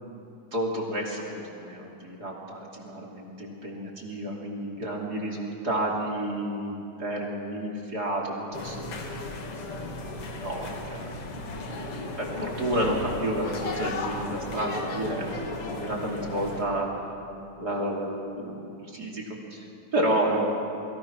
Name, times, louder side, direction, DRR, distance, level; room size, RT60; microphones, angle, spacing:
voice 1, 0.5-9.0 10.0-11.2 12.2-16.9 17.6-18.6 18.9-20.5, right 1 dB, 30° right, 0 dB, 2.8 m, -31 dB
sound 1, 8.5-16.6, left 2 dB, 45° left, 2.4 m, -35 dB
29.0 x 22.5 x 6.0 m, 2.7 s
omnidirectional pair, 4.2 m